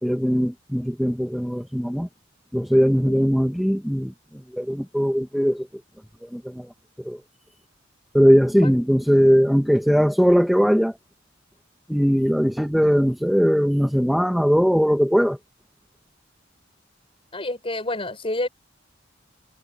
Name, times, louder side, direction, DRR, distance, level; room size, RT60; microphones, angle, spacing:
voice 1, 0.0-2.1 2.5-4.1 4.5-5.7 6.2-6.7 7.0-7.2 8.1-11.0 11.9-15.4, equal, ahead, 1.3 m, -20 dB
voice 2, 3.1-3.5 8.6-8.7 17.3-18.5, left 2 dB, 30° left, 7.2 m, -29 dB
head